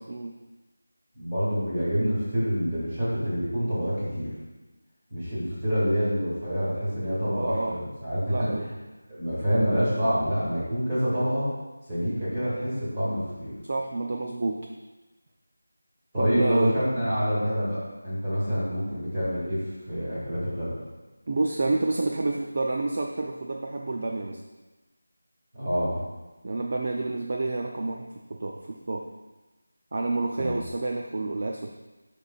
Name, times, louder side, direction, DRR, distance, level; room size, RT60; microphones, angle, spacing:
voice 1, 1.2-4.3 5.1-8.5 9.1-11.5 11.9-13.5 16.1-20.8 25.5-26.0 30.4-30.6, equal, 10° right, -12 dB, 2.1 m, -27 dB
voice 2, 7.4-7.8 8.3-8.7 13.6-14.6 16.2-16.8 21.3-24.4 26.4-29.0 29.9-31.7, right 2 dB, 30° right, 1 dB, 0.4 m, -29 dB
10.5 x 5.3 x 2.4 m, 1.1 s
figure-of-eight pair, 180°, 0 cm